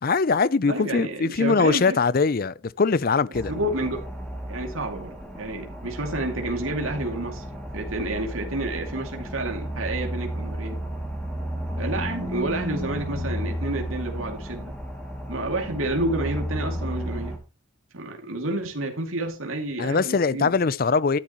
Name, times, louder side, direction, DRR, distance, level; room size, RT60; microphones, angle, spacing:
voice 1, 0.0-3.5 19.8-21.2, left 4 dB, 45° left, 0.5 m, -22 dB
voice 2, 0.7-2.0 3.5-4.1 4.5-7.4 7.7-10.8 11.8-14.7 15.3-17.4 17.9-20.5, right 2 dB, 80° right, 2.4 m, -30 dB
sound 1, 3.3-17.4, equal, 5° left, 2.4 m, -33 dB
12.0 x 10.5 x 3.0 m
head